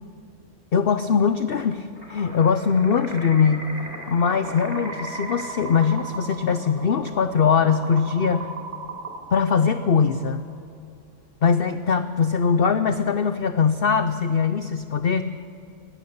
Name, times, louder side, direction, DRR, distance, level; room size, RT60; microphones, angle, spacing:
voice 1, 0.7-3.7 4.1-8.5 9.3-10.4 11.4-15.2, left 6 dB, 50° left, 11 dB, 0.8 m, -21 dB
sound 1, 1.9-10.4, right 2 dB, 40° right, 4.0 m, -37 dB
20.0 x 17.0 x 8.6 m, 2.5 s
omnidirectional pair, 1.5 m